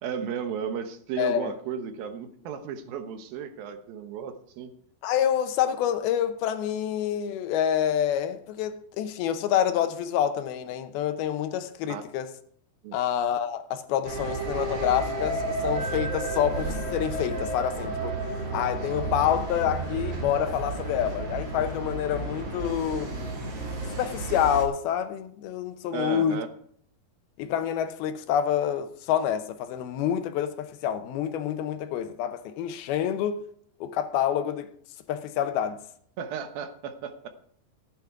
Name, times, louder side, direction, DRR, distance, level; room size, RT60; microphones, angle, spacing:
voice 1, 0.0-4.7 11.9-12.0 12.8-13.0 25.9-26.5 36.2-37.3, right 7 dB, 75° right, 2.8 m, -34 dB
voice 2, 1.2-1.5 5.0-12.3 12.9-18.2 18.5-23.2 23.9-26.4 27.4-33.4 33.8-34.7 35.1-35.8, left 10 dB, 80° left, 2.7 m, -27 dB
sound 1, 14.0-24.7, right 2 dB, 45° right, 3.5 m, -32 dB
14.5 x 9.5 x 4.7 m
omnidirectional pair, 4.5 m